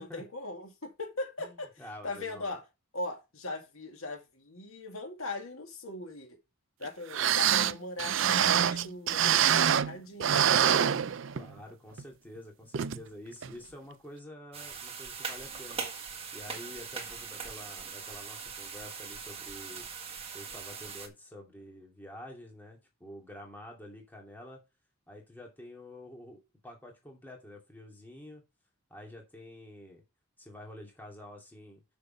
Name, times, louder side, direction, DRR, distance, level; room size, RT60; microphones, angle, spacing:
voice 1, 0.0-1.7 2.0-2.6 2.9-6.4 6.8-10.9, left 2 dB, 75° left, 2.2 m, -40 dB
voice 2, 1.4-2.6 11.3-15.8 16.3-19.9 20.3-24.6 25.1-28.4 28.9-30.0 30.4-31.8, left 1 dB, 10° left, 2.6 m, -48 dB
sound 1, 6.8-6.9 7.1-9.9 10.2-11.6 12.0-12.1 12.7-13.0 13.4-13.5, right 9 dB, 60° right, 0.5 m, -25 dB
sound 2, 14.5-21.1, right 6 dB, 25° right, 1.6 m, -41 dB
6.8 x 6.7 x 5.2 m
head